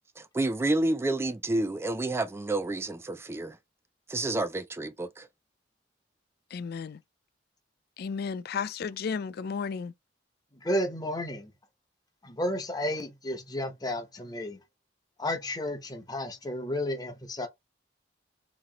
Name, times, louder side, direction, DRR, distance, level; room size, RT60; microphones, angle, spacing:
voice 1, 0.2-3.6 4.1-5.3, right 2 dB, 15° right, 0.3 m, -29 dB
voice 2, 6.5-7.0 8.0-9.9, left 6 dB, 55° left, 0.4 m, -33 dB
voice 3, 10.5-11.5 12.2-14.6 15.2-17.5, left 1 dB, 20° left, 0.8 m, -32 dB
3.0 x 2.9 x 3.8 m
head